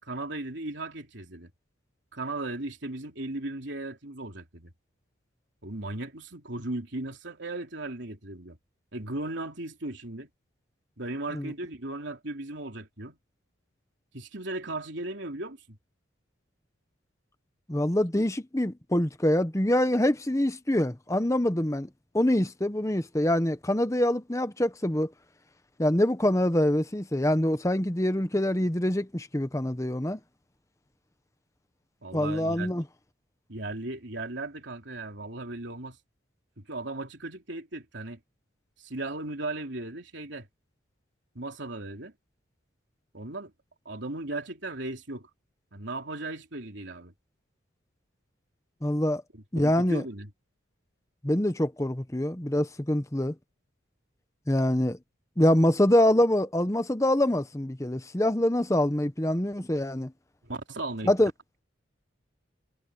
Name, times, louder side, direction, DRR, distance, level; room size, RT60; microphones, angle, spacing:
voice 1, 0.0-1.5 2.1-4.7 5.6-8.6 8.9-10.3 11.0-13.2 14.1-15.8 32.0-32.7 33.5-36.0 36.6-38.2 38.8-40.5 41.3-42.1 43.1-43.5 43.8-45.3 45.7-47.1 49.3-50.3 60.4-61.1, right 2 dB, 60° right, 3.4 m, -36 dB
voice 2, 17.7-21.9 22.1-25.1 25.8-30.2 32.1-32.8 48.8-49.2 49.5-50.0 51.2-53.3 54.5-55.0 55.4-60.1 61.0-61.3, left 1 dB, 15° left, 0.9 m, -25 dB
head